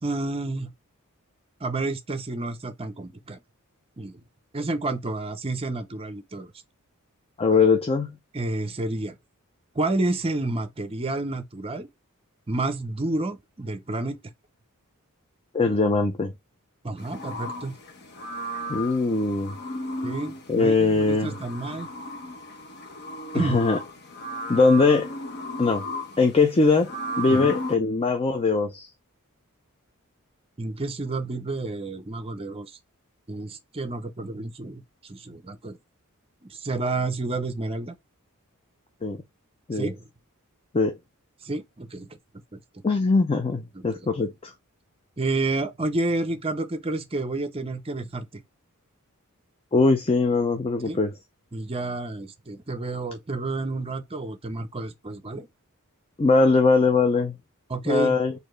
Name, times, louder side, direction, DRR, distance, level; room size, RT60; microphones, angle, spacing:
voice 1, 0.0-0.7 1.6-3.4 4.0-4.2 4.5-6.5 8.3-9.2 9.7-11.9 12.5-14.2 16.8-17.7 20.0-21.9 23.3-23.6 27.3-27.5 30.6-32.7 33.3-34.8 35.1-35.8 36.4-37.9 39.7-40.0 41.4-42.1 42.5-42.6 43.7-44.1 45.2-48.4 50.8-51.0 51.5-55.5 57.7-58.2, right 2 dB, 25° right, 0.7 m, -30 dB
voice 2, 7.4-8.1 15.5-16.3 18.7-19.5 20.5-21.3 23.3-23.8 24.5-25.1 25.6-25.8 26.2-26.9 27.2-28.9 39.0-39.2 39.7-39.9 40.7-40.9 42.8-44.5 49.7-51.1 56.2-57.4 57.9-58.3, left 3 dB, 25° left, 0.5 m, -21 dB
sound 1, 17.0-27.8, left 1 dB, 50° left, 0.9 m, -35 dB
4.3 x 2.7 x 3.2 m
head